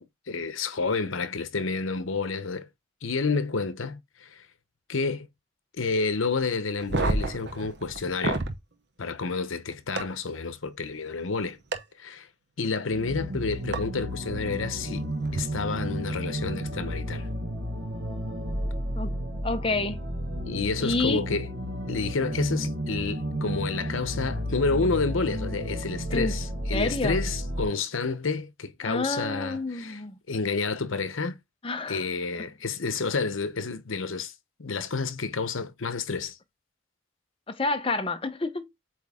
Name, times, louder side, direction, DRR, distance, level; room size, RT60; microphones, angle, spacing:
voice 1, 0.3-2.7 3.0-4.4 4.9-5.3 5.8-8.4 9.0-11.6 12.0-12.3 12.6-17.3 20.5-21.5 21.9-30.0 30.3-31.4 31.9-34.3 34.6-36.4, left 4 dB, 75° left, 0.9 m, -29 dB
sound 1, 6.8-8.6 10.0-10.1 11.7-11.8 13.7-13.8 15.2-15.4, right 2 dB, 55° right, 0.9 m, -28 dB
sound 2, 12.9-27.7, equal, 90° right, 1.6 m, -32 dB
voice 2, 19.4-20.1 20.8-21.2 26.1-26.3 26.7-27.2 28.8-30.2 31.6-32.1 37.5-38.6, left 3 dB, 25° left, 0.7 m, -28 dB
8.0 x 3.3 x 3.6 m
head